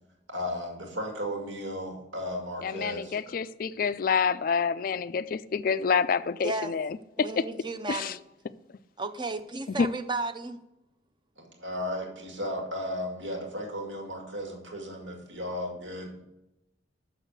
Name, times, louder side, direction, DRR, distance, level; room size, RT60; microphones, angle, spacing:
voice 1, 0.3-3.2 11.4-16.2, equal, 80° right, 2.1 m, -35 dB
voice 2, 2.6-7.4 7.9-8.2 9.8-9.9, left 6 dB, 45° left, 0.3 m, -27 dB
voice 3, 6.4-6.7 7.2-8.2 9.0-10.6, right 3 dB, 25° right, 0.5 m, -33 dB
6.6 x 6.3 x 6.5 m
head